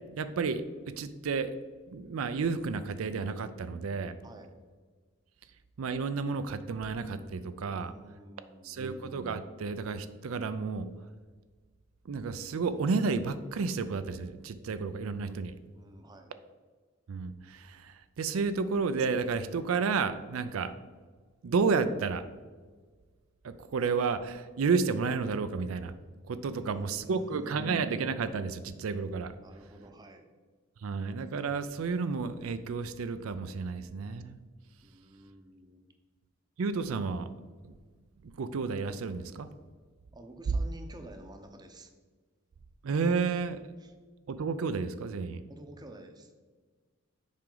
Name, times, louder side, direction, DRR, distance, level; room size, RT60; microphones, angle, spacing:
voice 1, 0.2-1.5 1.9-4.1 5.8-7.9 8.6-10.9 12.1-15.6 17.1-20.7 21.4-22.2 23.4-25.9 26.3-29.3 30.8-34.4 36.6-37.3 37.6-37.7 38.2-39.5 42.8-43.6 44.3-45.4, right 4 dB, 90° right, 11 dB, 0.4 m, -31 dB
voice 2, 4.2-4.5 7.6-8.9 15.7-16.3 26.3-27.5 29.4-30.3 34.8-35.8 40.1-41.9 43.8-43.9 45.5-46.3, right 1 dB, 20° right, 5 dB, 0.6 m, -50 dB
7.4 x 4.8 x 3.9 m, 1.4 s
head